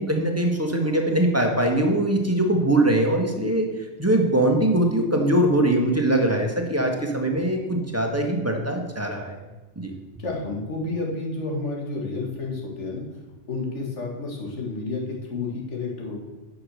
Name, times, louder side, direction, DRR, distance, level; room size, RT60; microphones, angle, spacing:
voice 1, 0.0-3.7 4.0-9.4 9.8-9.9, right 1 dB, 15° right, 2 dB, 1.4 m, -22 dB
voice 2, 10.2-13.0 13.5-16.2, left 3 dB, 80° left, -1 dB, 2.2 m, -30 dB
9.9 x 6.3 x 6.4 m, 1.2 s
omnidirectional pair, 1.2 m